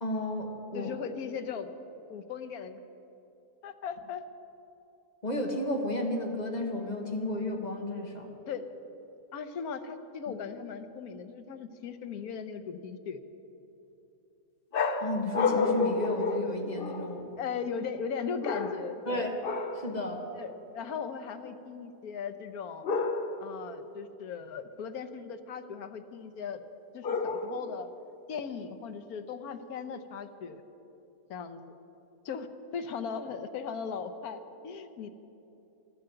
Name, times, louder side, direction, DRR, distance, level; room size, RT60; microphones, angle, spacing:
voice 1, 0.0-0.9 5.2-8.3 15.0-17.2 19.1-19.3 19.7-20.2, left 1 dB, 30° left, 2 dB, 1.5 m, -32 dB
voice 2, 0.7-1.7 2.1-2.8 3.6-4.2 8.5-8.7 9.3-13.2 17.4-19.3 20.3-22.9 23.4-26.6 26.9-27.9 28.3-30.6 31.3-31.6 32.2-32.5 32.7-35.1, left 6 dB, 90° left, 9 dB, 1.3 m, -38 dB
sound 1, 14.7-17.2 18.4-19.0 19.4-19.9 22.8-23.5 27.0-27.8, left 4 dB, 50° left, 0.8 m, -30 dB
12.5 x 11.5 x 7.8 m, 2.9 s
omnidirectional pair, 1.5 m